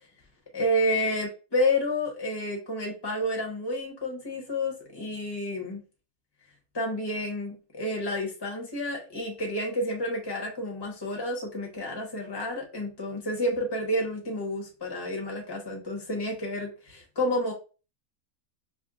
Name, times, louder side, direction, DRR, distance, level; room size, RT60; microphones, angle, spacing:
voice 1, 0.5-5.8 6.7-17.5, left 1 dB, 20° left, 0 dB, 1.1 m, -30 dB
5.2 x 2.3 x 2.4 m, 0.33 s
omnidirectional pair, 1.5 m